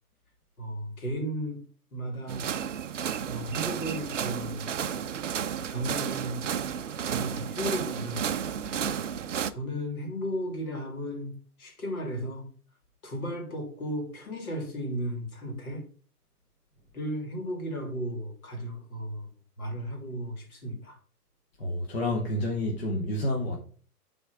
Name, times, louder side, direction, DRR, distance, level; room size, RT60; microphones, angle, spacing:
voice 1, 0.6-1.6 1.9-2.5 3.2-4.7 5.7-6.4 7.1-8.3 9.5-12.5 13.0-15.8 16.9-19.3 19.6-21.0, equal, 60° left, 2.9 m, -35 dB
sound 1, 2.3-9.5, right 8 dB, 50° right, 0.5 m, -32 dB
voice 2, 21.6-23.6, left 1 dB, 40° left, 1.2 m, -29 dB
8.3 x 4.2 x 4.7 m
hypercardioid pair, 175°, 48 cm